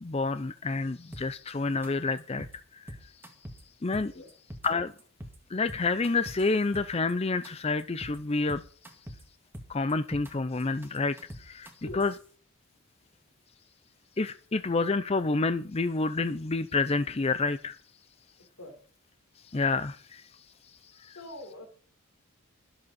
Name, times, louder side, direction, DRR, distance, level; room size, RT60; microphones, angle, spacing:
voice 1, 0.0-2.5 2.7-3.2 3.8-4.1 4.6-4.9 5.5-8.6 9.7-12.2 14.2-17.8 19.4-21.2, left 3 dB, 25° left, 0.5 m, -29 dB
sound 1, 1.1-1.5 1.8-1.9 2.2-2.6 2.9-3.6 3.9-4.7 5.0-5.4 5.7-7.1 7.4-7.5 7.8-8.2 8.5-9.2 9.5-10.3 10.6-12.1, equal, 10° right, 1.9 m, -43 dB
voice 2, 21.0-21.7, left 1 dB, 65° left, 4.0 m, -44 dB
21.5 x 7.8 x 4.2 m
head